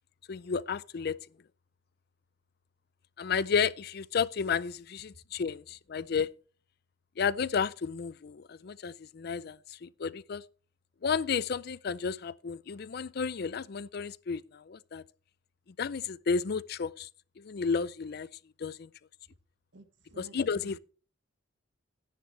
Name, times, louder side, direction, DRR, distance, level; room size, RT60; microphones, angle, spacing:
voice 1, 0.3-1.2 3.2-6.3 7.2-10.4 11.0-15.0 15.8-17.1 17.4-18.3 18.6-18.9 20.2-20.8, left 6 dB, 50° left, 0.4 m, -32 dB
voice 2, 19.7-20.8, right 2 dB, 60° right, 1.5 m, -54 dB
12.0 x 10.5 x 3.2 m
head